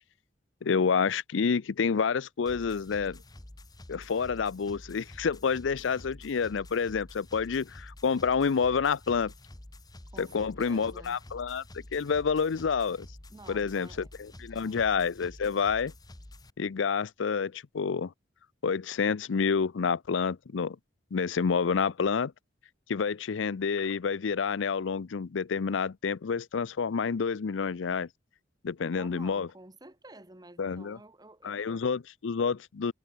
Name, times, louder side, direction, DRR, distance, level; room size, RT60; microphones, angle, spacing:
voice 1, 0.6-3.2 3.9-9.3 10.2-11.6 11.9-13.1 13.5-15.9 16.6-18.1 18.6-20.8 21.1-22.3 22.9-28.1 28.6-29.5 30.6-31.0 31.4-32.9, left 5 dB, 80° left, 0.5 m, -28 dB
sound 1, 2.5-16.5, left 1 dB, 20° left, 1.2 m, -49 dB
voice 2, 10.1-11.2 13.3-14.8 29.0-31.8, right 2 dB, 20° right, 2.1 m, -51 dB
head